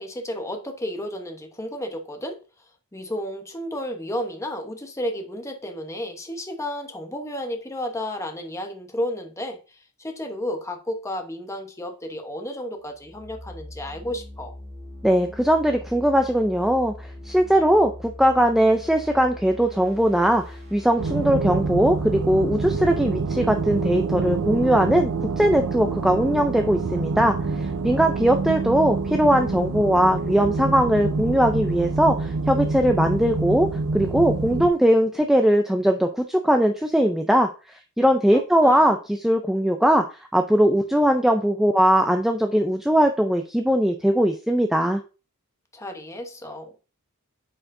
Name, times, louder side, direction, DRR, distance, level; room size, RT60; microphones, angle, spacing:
voice 1, 0.0-2.4 2.9-14.6 38.3-39.0 45.7-46.8, left 1 dB, 15° left, 1.0 m, -32 dB
sound 1, 12.9-24.7, left 1 dB, 50° right, 2.0 m, -42 dB
voice 2, 15.0-25.1 25.4-33.7 33.9-37.5 38.0-40.0 40.3-45.0, equal, ahead, 0.4 m, -20 dB
sound 2, 21.0-34.7, right 3 dB, 75° right, 0.6 m, -27 dB
8.7 x 4.7 x 2.6 m
head